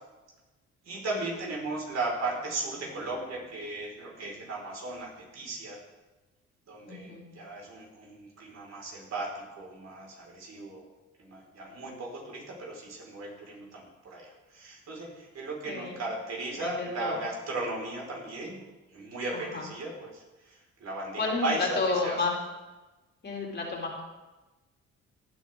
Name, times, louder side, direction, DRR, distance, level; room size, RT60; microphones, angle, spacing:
voice 1, 0.8-5.8 6.7-10.9 11.2-22.3, right 2 dB, 60° right, -2 dB, 5.9 m, -36 dB
voice 2, 6.9-7.3 15.7-15.9 16.6-17.2 19.3-19.7 21.2-22.3 23.2-24.0, left 3 dB, 35° left, -2 dB, 3.8 m, -31 dB
18.0 x 11.0 x 4.0 m, 1.1 s
cardioid pair, 90°, 30 cm